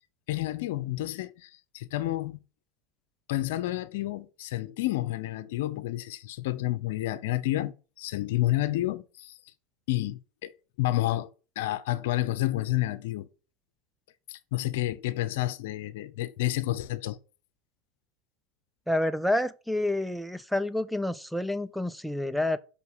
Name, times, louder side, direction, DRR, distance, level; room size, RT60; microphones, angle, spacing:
voice 1, 0.3-2.4 3.3-9.4 9.9-11.3 11.6-13.3 14.3-17.2, left 16 dB, 75° left, 0.8 m, -30 dB
voice 2, 18.9-22.6, left 1 dB, ahead, 0.6 m, -28 dB
5.8 x 5.6 x 6.1 m
hypercardioid pair, 100°, 0 cm